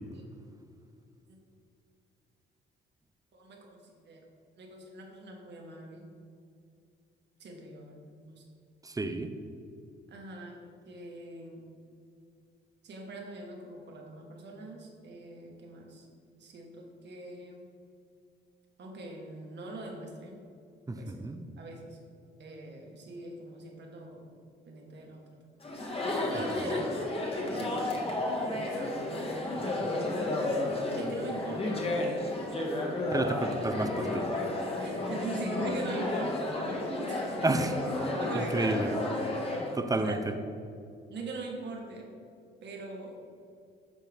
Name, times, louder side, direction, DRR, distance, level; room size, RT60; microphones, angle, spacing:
voice 1, 3.3-4.2 4.6-6.1 7.4-8.4 10.1-11.7 12.8-16.1 16.4-17.7 18.8-20.4 20.9-21.3 21.6-22.0 22.4-24.2 24.7-25.5 26.3-27.0 27.5-28.0 28.2-30.4 30.9-32.0 33.0-33.5 34.8-37.2 38.2-39.0 39.9-40.2 41.1-42.1 42.6-43.2, right 2 dB, 60° right, 1 dB, 1.6 m, -43 dB
voice 2, 8.8-9.3 20.9-21.4 26.3-26.4 26.7-26.8 33.1-34.3 37.4-37.7 38.3-38.9 39.7-40.3, right 2 dB, 15° right, 7 dB, 0.7 m, -30 dB
Chatter, 25.6-39.7, left 2 dB, 30° left, 1.5 m, -32 dB
13.0 x 4.5 x 3.6 m, 2.4 s
cardioid pair, 90°, 20 cm